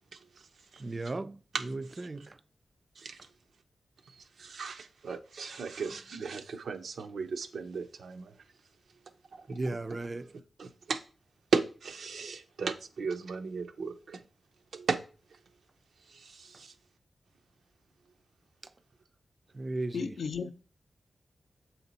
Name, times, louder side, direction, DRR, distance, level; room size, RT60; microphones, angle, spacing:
voice 1, 0.8-2.3 9.5-10.3 19.5-20.0, right 2 dB, 30° right, 0.3 m, -36 dB
voice 2, 4.4-8.3 9.5-9.6 9.9-10.0 10.6-11.0 11.5-14.2 14.7-15.0 16.1-16.7, right 4 dB, 90° right, 0.6 m, -35 dB
voice 3, 19.9-20.5, left 5 dB, 80° left, 0.5 m, -34 dB
7.3 x 4.3 x 4.0 m
wide cardioid pair, 150°, 0 cm